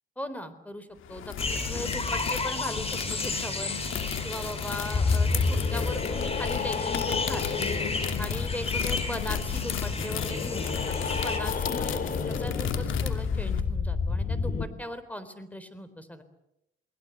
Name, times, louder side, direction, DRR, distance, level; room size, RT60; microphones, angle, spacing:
voice 1, 0.2-3.7 4.2-7.8 8.2-16.2, left 1 dB, 5° left, 12 dB, 3.9 m, -38 dB
sound 1, 1.0-13.6, left 9 dB, 80° left, 2.6 m, -35 dB
sound 2, 1.4-11.4, left 3 dB, 30° left, 4.5 m, -33 dB
sound 3, 4.9-14.7, left 4 dB, 45° left, 2.9 m, -30 dB
29.5 x 20.5 x 8.0 m, 0.83 s
cardioid pair, 90°, 20 cm